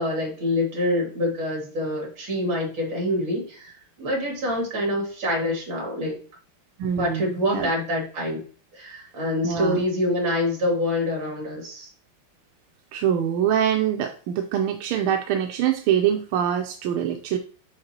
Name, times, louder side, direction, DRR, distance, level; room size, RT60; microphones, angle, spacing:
voice 1, 0.0-6.1 7.0-8.4 8.7-11.9, left 1 dB, 65° right, 0 dB, 3.0 m, -26 dB
voice 2, 6.8-7.7 9.4-9.8 12.9-17.4, right 9 dB, 85° right, 5 dB, 1.5 m, -24 dB
6.6 x 5.8 x 2.9 m, 0.40 s
omnidirectional pair, 2.3 m